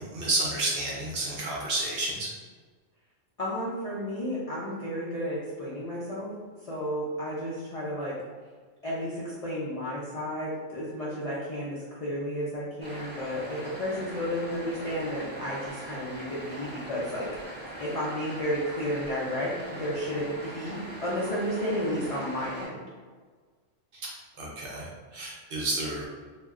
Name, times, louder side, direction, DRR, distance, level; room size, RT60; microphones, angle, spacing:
voice 1, 0.0-2.3 23.9-24.1 24.4-26.1, right 2 dB, 60° right, -4 dB, 0.7 m, -31 dB
voice 2, 3.4-6.3 6.7-8.2 8.8-17.3 17.8-19.5 19.8-22.8, equal, 70° left, -7 dB, 0.3 m, -32 dB
sound 1, 12.8-22.7, right 1 dB, 10° left, 0.7 m, -41 dB
2.2 x 2.1 x 3.5 m, 1.5 s
omnidirectional pair, 1.3 m